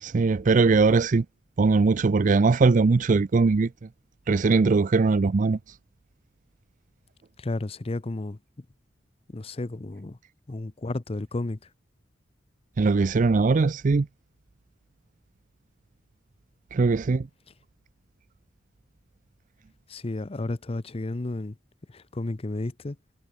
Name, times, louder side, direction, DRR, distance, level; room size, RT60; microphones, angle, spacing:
voice 1, 0.0-1.3 1.6-3.7 4.3-5.8 12.8-14.1 16.7-17.3, right 4 dB, 45° right, 0.4 m, -21 dB
voice 2, 7.4-8.6 9.3-10.2 10.5-11.6 19.9-21.6 21.9-23.0, left 2 dB, 35° left, 0.7 m, -32 dB
head